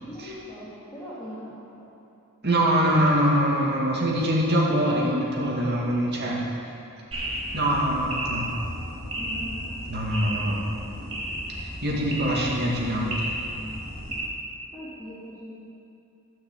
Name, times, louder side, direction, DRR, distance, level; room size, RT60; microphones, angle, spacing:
voice 1, 0.0-1.8 9.1-9.6 14.7-15.6, equal, 15° left, -12 dB, 2.5 m, -40 dB
voice 2, 2.4-6.4 7.5-8.5 9.9-10.6 11.8-13.3, equal, 50° right, -3 dB, 2.1 m, -23 dB
sound 1, 7.1-14.2, right 1 dB, 25° right, 2.0 m, -33 dB
12.0 x 5.9 x 7.4 m, 2.6 s
head